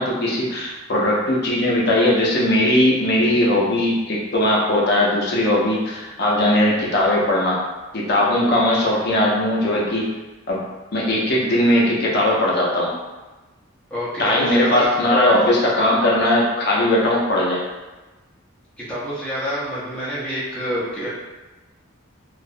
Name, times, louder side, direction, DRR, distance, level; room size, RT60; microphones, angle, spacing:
voice 1, 0.0-7.6 7.9-10.0 10.5-10.6 10.9-13.0 14.2-17.6, left 1 dB, 50° left, -4 dB, 0.5 m, -19 dB
voice 2, 13.9-14.9 18.8-21.1, equal, 5° left, -10 dB, 0.6 m, -27 dB
2.3 x 2.0 x 2.6 m, 1.2 s
head